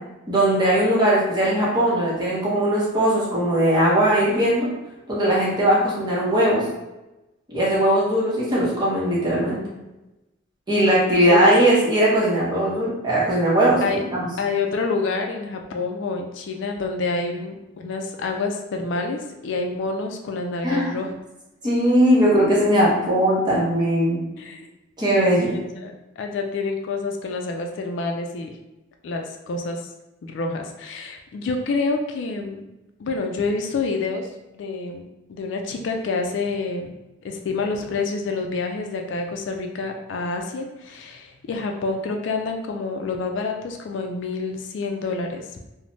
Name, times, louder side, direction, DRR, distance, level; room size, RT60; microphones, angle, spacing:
voice 1, 0.3-4.7 5.1-6.6 7.5-9.6 10.7-14.3 20.6-20.9 21.6-24.2 25.0-25.6, right 1 dB, 20° right, -7 dB, 0.8 m, -19 dB
voice 2, 11.1-11.5 13.8-14.0 14.4-21.2 24.4-24.7 25.4-25.5 25.8-28.5 29.0-29.8 30.2-32.7 33.0-34.3 34.5-36.9 37.2-45.5, left 3 dB, 65° left, 3 dB, 0.3 m, -28 dB
3.1 x 2.0 x 2.6 m, 0.99 s
head